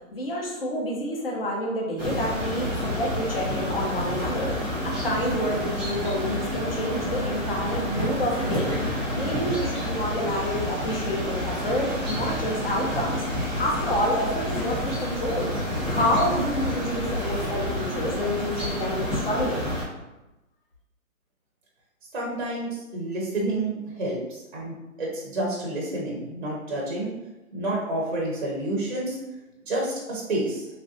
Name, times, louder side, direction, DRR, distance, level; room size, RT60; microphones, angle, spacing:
voice 1, 0.1-19.7, equal, 40° left, -1 dB, 0.7 m, -28 dB
sound 1, 2.0-19.8, equal, 10° right, 0.8 m, -29 dB
voice 2, 22.1-27.1 27.5-29.2 29.7-30.7, right 1 dB, 35° right, -3 dB, 0.6 m, -29 dB
3.2 x 2.4 x 2.6 m, 1.0 s
hypercardioid pair, 170°, 42 cm